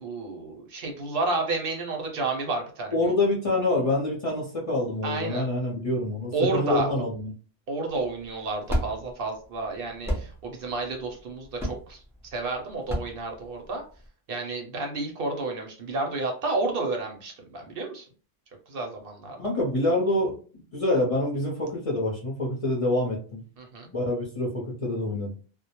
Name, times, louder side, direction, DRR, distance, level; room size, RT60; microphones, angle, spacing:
voice 1, 0.0-3.1 5.0-5.5 6.3-7.0 7.7-13.8 14.3-18.1 18.7-19.4 23.6-23.9, right 3 dB, 65° right, 2 dB, 0.7 m, -31 dB
voice 2, 2.9-7.3 19.4-20.4 20.7-23.4 23.9-25.3, left 1 dB, 40° left, -3 dB, 0.6 m, -26 dB
sound 1, 7.9-14.1, equal, 5° right, 0.4 m, -33 dB
2.1 x 2.0 x 2.8 m, 0.40 s
omnidirectional pair, 1.1 m